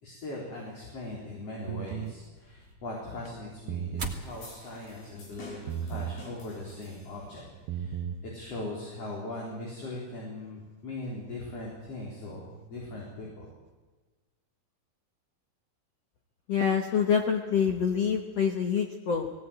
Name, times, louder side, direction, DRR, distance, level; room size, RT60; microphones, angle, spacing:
voice 1, 0.0-13.5, left 2 dB, 40° left, -3 dB, 5.0 m, -40 dB
sound 1, 1.7-2.2 3.5-4.2 5.7-6.2 7.5-8.2, right 9 dB, 75° right, 2.6 m, -34 dB
sound 2, 1.9-8.6, right 2 dB, 55° right, 0.7 m, -47 dB
sound 3, 4.4-7.5, left 3 dB, 85° left, 7.5 m, -50 dB
voice 2, 16.5-19.3, left 7 dB, 60° left, 4 dB, 1.8 m, -26 dB
19.5 x 17.5 x 9.1 m, 1.3 s
omnidirectional pair, 4.4 m